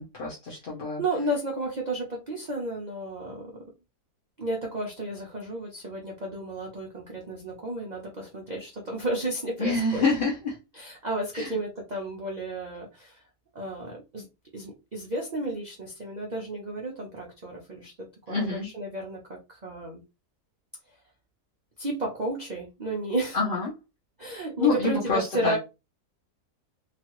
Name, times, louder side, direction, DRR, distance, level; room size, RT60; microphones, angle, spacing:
voice 1, 0.0-1.0 9.6-10.6 11.3-11.5 18.3-18.7 23.3-23.7 24.6-25.6, left 3 dB, 45° left, -5 dB, 0.7 m, -26 dB
voice 2, 1.0-3.5 4.4-10.0 10.7-13.2 13.5-14.2 14.5-20.0 21.8-23.4 24.2-25.6, right 2 dB, 55° right, -1 dB, 0.5 m, -33 dB
3.0 x 2.4 x 2.9 m, 0.26 s
omnidirectional pair, 1.7 m